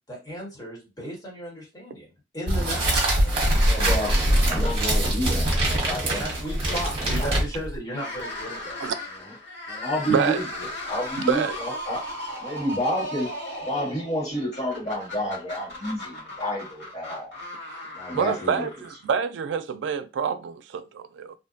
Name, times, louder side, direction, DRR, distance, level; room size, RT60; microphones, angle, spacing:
voice 1, 0.1-2.1 2.3-3.1 6.0-8.8, equal, 20° left, 1.2 m, -35 dB
sound 1, 2.5-7.8, right 1 dB, 30° right, 1.0 m, -23 dB
voice 2, 3.2-6.2 6.7-6.8 7.2-7.4 9.7-12.0 12.4-13.3 13.6-17.3 17.9-18.7, equal, 40° left, 1.5 m, -30 dB
sound 2, 7.9-19.2, left 1 dB, 80° left, 1.5 m, -37 dB
voice 3, 10.1-10.4 11.3-11.6 17.6-17.7 18.1-21.3, right 6 dB, 80° right, 0.3 m, -26 dB
2.6 x 2.1 x 2.5 m
head